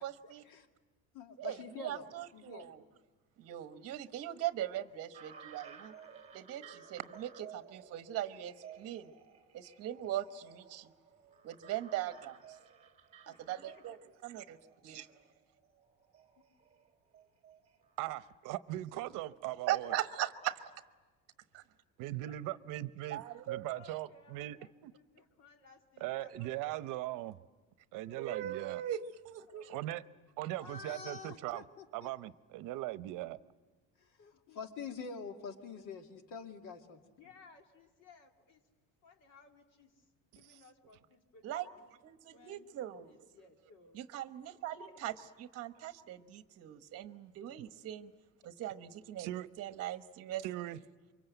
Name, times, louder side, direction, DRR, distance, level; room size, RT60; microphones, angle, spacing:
voice 1, 0.0-0.4 1.4-2.8 3.4-5.9 6.3-9.1 9.5-10.9 11.4-12.6 13.3-14.0 14.2-14.6 14.8-15.1 19.7-20.6 21.5-21.6 23.1-23.7 28.2-29.7 41.4-41.7 42.0-43.1 43.9-45.1 45.4-48.1 48.6-49.3 49.6-50.4, right 12 dB, 50° right, 1.2 m, -40 dB
voice 2, 1.1-2.7 30.6-32.1 34.0-34.1 34.6-37.0, left 5 dB, 85° left, 2.3 m, -46 dB
sound 1, 5.1-18.3, right 7 dB, 20° right, 2.5 m, -56 dB
voice 3, 13.2-13.8 19.1-19.2 22.2-22.6 23.7-27.0 28.0-28.3 29.5-30.2 34.2-34.6 37.2-38.7 39.0-41.9 42.3-44.0 44.8-45.1, left 3 dB, 55° left, 2.6 m, -61 dB
voice 4, 18.0-19.9 22.0-24.6 24.8-24.9 26.0-27.4 27.9-28.8 29.7-30.0 30.4-31.6 31.9-33.4 49.2-49.5 50.4-50.8, right 15 dB, 75° right, 0.8 m, -39 dB
28.5 x 24.5 x 8.0 m
cardioid pair, 180°, 32 cm